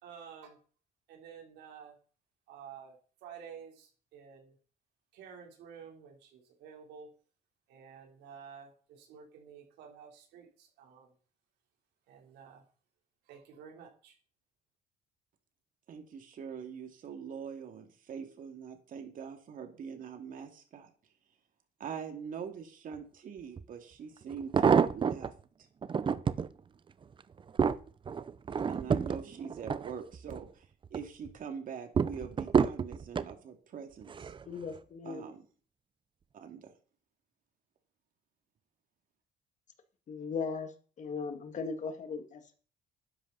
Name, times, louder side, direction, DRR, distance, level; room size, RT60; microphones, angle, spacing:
voice 1, 0.0-0.6 1.1-2.0 2.5-4.6 5.1-7.1 7.7-11.1 12.1-12.6 13.2-14.2, right 7 dB, 85° right, 0 dB, 3.7 m, -51 dB
voice 2, 15.9-20.9 21.8-25.3 28.7-30.7 30.9-34.3 35.0-35.4 36.3-36.7, right 7 dB, 55° right, 5 dB, 2.5 m, -43 dB
sound 1, 23.6-23.7 24.3-25.3 25.8-26.5 27.0-30.4 30.8-31.3 32.0-33.3 34.1-34.4 34.7-34.8, right 6 dB, 30° right, 0.7 m, -29 dB
voice 3, 34.5-35.3 40.1-40.7 41.0-42.6, left 5 dB, 45° left, 7 dB, 2.0 m, -38 dB
12.0 x 10.0 x 4.1 m, 0.41 s
cardioid pair, 110°, 17 cm